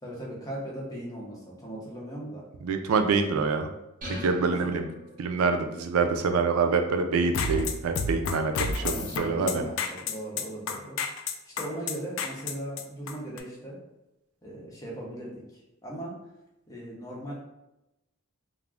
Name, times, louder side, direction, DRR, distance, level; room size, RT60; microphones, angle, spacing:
voice 1, 0.0-2.4 4.5-4.7 8.8-11.0 11.2-13.8 14.4-16.1 16.7-17.3, right 1 dB, 15° left, -4 dB, 0.7 m, -38 dB
voice 2, 2.6-3.7 4.1-4.8 5.2-9.6, right 4 dB, 90° right, 6 dB, 0.3 m, -26 dB
sound 1, 4.0-5.6, left 1 dB, 40° right, 0.8 m, -40 dB
sound 2, 7.2-13.4, left 4 dB, 65° left, 0.3 m, -30 dB
2.4 x 2.0 x 3.3 m, 0.92 s
head